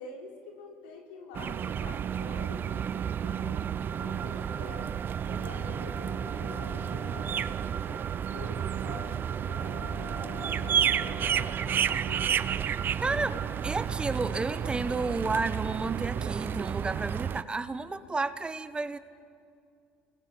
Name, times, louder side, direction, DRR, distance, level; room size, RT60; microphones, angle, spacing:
voice 1, 0.0-4.8 5.2-12.5, left 4 dB, 90° left, 1 dB, 4.1 m, -47 dB
sound 1, 1.3-17.4, right 8 dB, 40° right, 0.7 m, -31 dB
sound 2, 4.2-4.8 5.4-7.4 8.4-9.0 9.5-11.5, left 6 dB, 60° left, 6.1 m, -46 dB
voice 2, 13.0-13.4 13.6-19.0, right 3 dB, 20° right, 13 dB, 1.2 m, -31 dB
29.5 x 22.0 x 6.9 m, 2.4 s
supercardioid pair, 85°, 5 cm